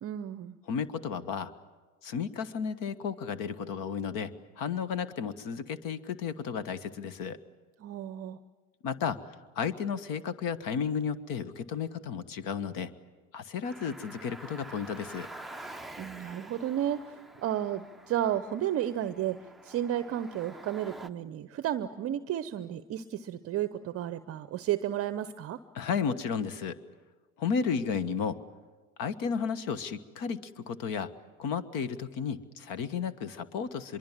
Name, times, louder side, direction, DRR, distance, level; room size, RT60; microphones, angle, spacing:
voice 1, 0.0-0.5 7.8-8.4 15.6-25.6, right 11 dB, 35° right, 13 dB, 0.8 m, -33 dB
voice 2, 0.7-1.5 2.0-7.4 8.8-12.9 13.3-15.3 25.7-26.8 27.4-28.4 29.0-31.1 31.4-34.0, left 6 dB, 50° left, 14 dB, 1.5 m, -33 dB
Car, 13.6-21.1, right 2 dB, ahead, 0.6 m, -47 dB
24.5 x 23.0 x 7.4 m, 1.3 s
hypercardioid pair, 90°, 44 cm